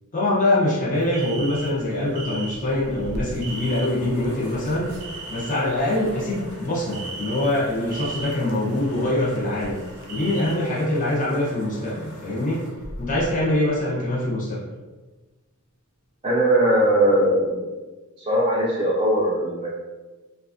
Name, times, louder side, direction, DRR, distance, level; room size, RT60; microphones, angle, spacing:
voice 1, 0.1-4.9 5.3-9.8 10.1-12.6 13.0-14.6, left 1 dB, 35° left, -7 dB, 0.6 m, -24 dB
sound 1, 0.9-10.5, right 2 dB, 85° right, 0.5 m, -38 dB
sound 2, 3.3-14.5, equal, 90° left, 1.2 m, -42 dB
voice 2, 16.2-17.7 18.2-19.7, right 1 dB, 25° right, -8 dB, 0.5 m, -20 dB
3.1 x 2.3 x 2.4 m, 1.2 s
head